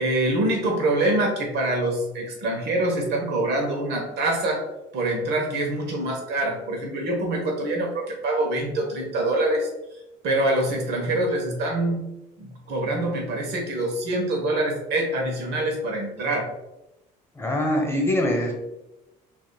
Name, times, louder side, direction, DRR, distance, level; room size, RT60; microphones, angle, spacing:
voice 1, 0.0-4.6 4.9-9.7 10.2-12.0 12.4-16.5, right 1 dB, 75° right, 1 dB, 1.2 m, -25 dB
voice 2, 17.3-18.5, left 1 dB, 15° left, 1 dB, 1.0 m, -23 dB
6.0 x 2.8 x 2.3 m, 0.93 s
cardioid pair, 110°, 17 cm